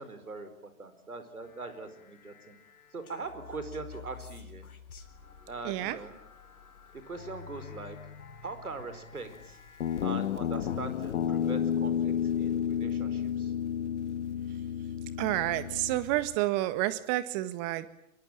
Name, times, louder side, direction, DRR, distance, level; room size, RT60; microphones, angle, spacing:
voice 1, 0.0-2.6 2.9-4.7 5.5-6.1 6.9-8.0 8.4-9.6 10.0-13.5, right 3 dB, 85° right, 10 dB, 4.9 m, -42 dB
sound 1, 1.4-10.1, left 6 dB, 75° left, 4.1 m, -50 dB
voice 2, 5.6-6.0 15.2-17.9, right 16 dB, 30° right, 13 dB, 1.8 m, -29 dB
Guitar, 9.8-16.4, left 9 dB, 55° left, 1.7 m, -31 dB
25.0 x 23.0 x 9.0 m, 0.77 s
figure-of-eight pair, 125°, 43 cm